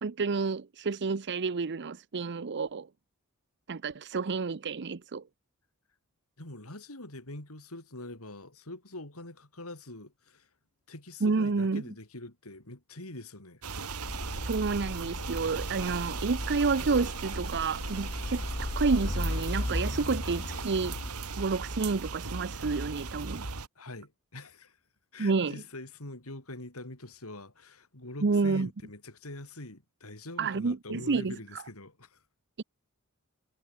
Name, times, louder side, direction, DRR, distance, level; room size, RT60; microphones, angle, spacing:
voice 1, 0.0-2.9 3.7-5.2 11.2-11.8 14.4-21.0 21.4-23.5 25.2-25.6 28.2-28.7 30.4-31.6 32.6-32.7, right 4 dB, 50° right, 0.7 m, -30 dB
voice 2, 6.4-10.5 10.9-13.6 23.7-24.8 25.1-32.2, left 2 dB, 70° left, 5.0 m, -44 dB
sound 1, 13.6-23.7, right 4 dB, 90° right, 2.3 m, -38 dB
sound 2, 14.0-21.1, left 1 dB, 30° left, 1.1 m, -36 dB
head